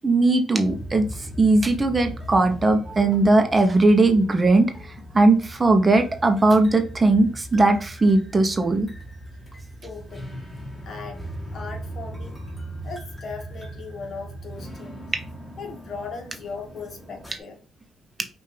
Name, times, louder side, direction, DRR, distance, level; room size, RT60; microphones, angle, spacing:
voice 1, 0.0-1.0 1.4-4.7 5.1-8.9, right 2 dB, 25° right, 5 dB, 0.9 m, -18 dB
sound 1, 0.6-17.4, equal, 5° left, 1.5 m, -39 dB
voice 2, 9.8-10.4 10.8-11.2 11.5-12.4 12.8-15.1 15.6-17.6, left 4 dB, 55° left, 2 dB, 1.7 m, -38 dB
5.6 x 2.7 x 3.3 m, 0.36 s
cardioid pair, 90°, 0 cm